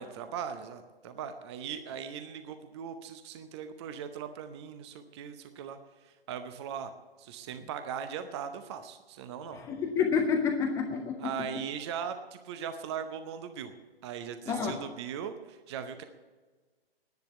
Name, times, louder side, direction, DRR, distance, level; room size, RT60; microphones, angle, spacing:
voice 1, 0.0-5.8 6.0-6.9 7.2-9.6 11.2-13.7 14.0-16.0, right 7 dB, 25° right, 9 dB, 0.7 m, -39 dB
voice 2, 9.5-11.3 14.5-14.8, left 6 dB, 10° left, 3 dB, 0.6 m, -29 dB
10.5 x 10.0 x 8.6 m, 1.3 s
figure-of-eight pair, 130°, 31 cm